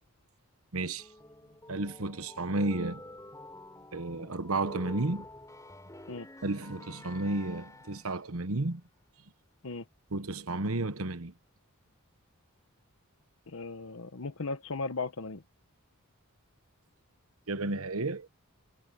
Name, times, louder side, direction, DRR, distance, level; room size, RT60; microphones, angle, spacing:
voice 1, 0.7-1.1 1.7-3.0 3.9-5.2 6.4-8.8 10.1-11.3 17.5-18.3, right 2 dB, 75° right, 1.2 m, -32 dB
sound 1, 1.0-8.3, left 1 dB, 15° left, 7.9 m, -49 dB
voice 2, 13.5-15.4, left 3 dB, 70° left, 1.0 m, -36 dB
head